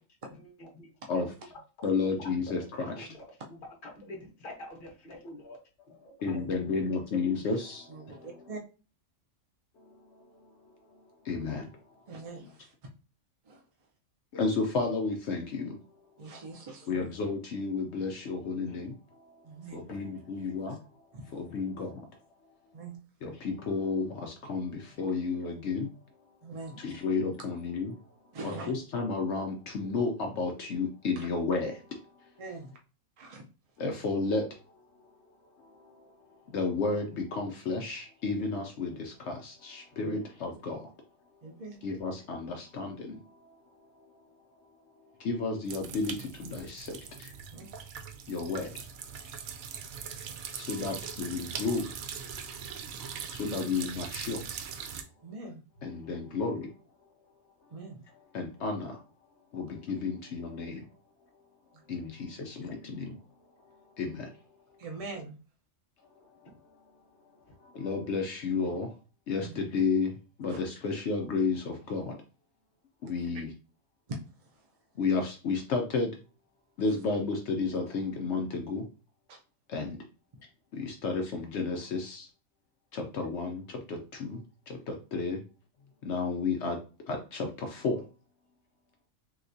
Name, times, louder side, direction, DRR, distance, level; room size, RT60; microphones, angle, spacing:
voice 1, 0.3-1.3 2.1-2.3 2.8-5.6 5.9-6.7 7.3-7.5 18.6-18.9 50.5-50.6, left 1 dB, 45° left, 0 dB, 1.0 m, -47 dB
voice 2, 1.8-3.1 5.9-8.4 9.8-9.9 11.2-11.8 14.3-15.8 16.9-19.4 19.7-20.8 21.3-22.1 23.2-25.9 26.8-28.0 28.4-32.0 33.8-34.5 35.6-36.0 36.5-40.8 41.8-43.5 45.2-47.3 48.3-48.7 50.5-51.9 53.4-54.5 55.8-56.7 58.3-59.0 59.5-60.8 61.9-63.2 64.0-64.3 67.6-68.9 69.3-72.2 73.0-73.5 75.0-76.1 76.8-78.9 79.7-80.0 80.7-82.3 82.9-84.4 84.7-85.4 86.0-86.8 87.1-88.0, left 4 dB, 65° left, 3 dB, 0.8 m, -32 dB
voice 3, 7.9-8.6 12.1-12.7 13.5-13.6 16.2-17.1 19.4-19.8 21.1-21.2 22.7-23.0 26.4-26.8 27.4-27.5 28.3-28.7 31.2-31.3 32.4-32.7 33.2-33.4 40.0-40.2 41.4-41.8 47.5-47.7 55.2-55.6 57.7-58.0 64.8-65.4 69.4-69.6 70.5-70.6 73.3-73.4 74.1-74.2 79.3-79.4, right 3 dB, 55° right, 1 dB, 0.4 m, -42 dB
sound 1, 45.7-55.0, right 7 dB, 85° right, 1.0 m, -41 dB
3.3 x 2.8 x 2.6 m, 0.34 s
omnidirectional pair, 1.4 m